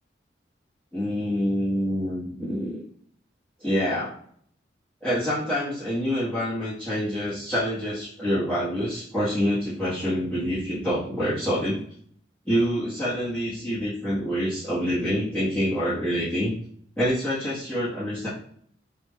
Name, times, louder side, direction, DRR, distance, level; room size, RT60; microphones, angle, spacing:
voice 1, 0.9-2.8 3.6-4.1 5.0-11.8 12.4-16.5 17.0-18.3, equal, 10° left, -12 dB, 1.0 m, -26 dB
3.2 x 2.3 x 3.5 m, 0.63 s
head